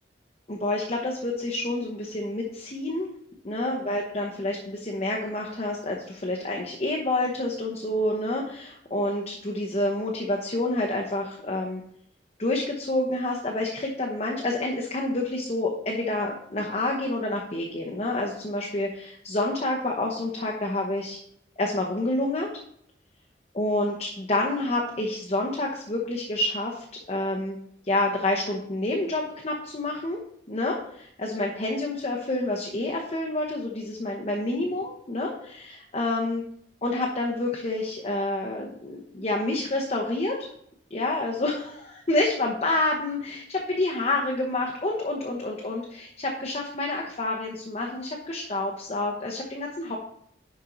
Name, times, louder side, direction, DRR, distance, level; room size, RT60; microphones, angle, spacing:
voice 1, 0.5-3.1 3.4-11.8 12.4-21.2 21.6-22.5 23.5-27.6 27.8-30.2 30.5-36.4 36.8-40.5 40.9-50.0, left 2 dB, 35° left, -1 dB, 1.0 m, -28 dB
10.5 x 4.6 x 4.0 m, 0.69 s
head